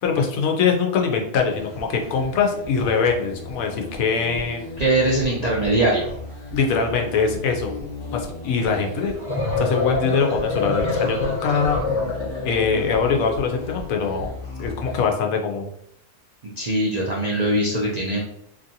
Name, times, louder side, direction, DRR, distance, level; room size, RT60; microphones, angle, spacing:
voice 1, 0.0-4.6 6.5-7.7 8.1-9.1 9.6-11.8 12.4-14.3 14.6-15.7, left 5 dB, 90° left, 3 dB, 1.1 m, -22 dB
sound 1, 1.4-15.1, left 2 dB, 55° left, 1.2 m, -36 dB
voice 2, 4.8-6.1 16.4-18.2, right 1 dB, 60° right, -5 dB, 0.4 m, -21 dB
sound 2, 9.0-12.9, left 3 dB, 30° left, 0.5 m, -25 dB
2.9 x 2.6 x 2.6 m, 0.74 s
omnidirectional pair, 1.4 m